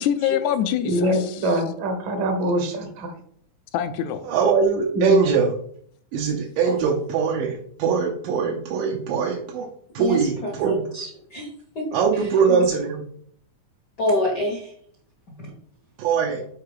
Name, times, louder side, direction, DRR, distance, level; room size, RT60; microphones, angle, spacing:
voice 1, 0.0-1.5 3.7-4.3, left 10 dB, 80° left, 10 dB, 1.8 m, -25 dB
voice 2, 0.8-3.1 4.9-5.2, equal, 65° right, 5 dB, 1.2 m, -23 dB
voice 3, 4.3-5.5 6.1-9.7 9.9-10.8 11.9-13.0 16.0-16.4, right 6 dB, 85° right, -1 dB, 2.5 m, -22 dB
voice 4, 10.0-11.5 11.7-11.8 12.1-12.6 14.0-14.7 15.4-15.5, left 1 dB, 60° left, -1 dB, 1.1 m, -27 dB
6.6 x 4.5 x 4.8 m, 0.62 s
omnidirectional pair, 3.7 m